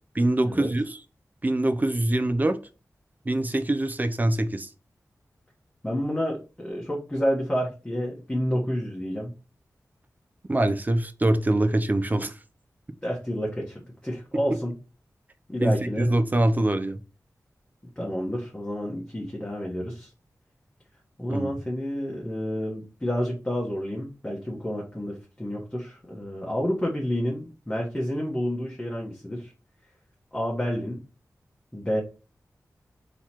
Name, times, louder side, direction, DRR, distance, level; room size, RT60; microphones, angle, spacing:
voice 1, 0.1-1.0 1.4-2.6 3.3-4.7 10.5-12.3 15.6-17.0 21.3-21.5, right 1 dB, 30° right, 0.6 m, -24 dB
voice 2, 5.8-9.3 13.0-14.7 15.5-16.2 18.0-20.1 21.2-29.5 30.3-31.0 31.7-32.0, equal, 15° left, 1.3 m, -29 dB
3.9 x 3.1 x 4.3 m
wide cardioid pair, 85°, 6 cm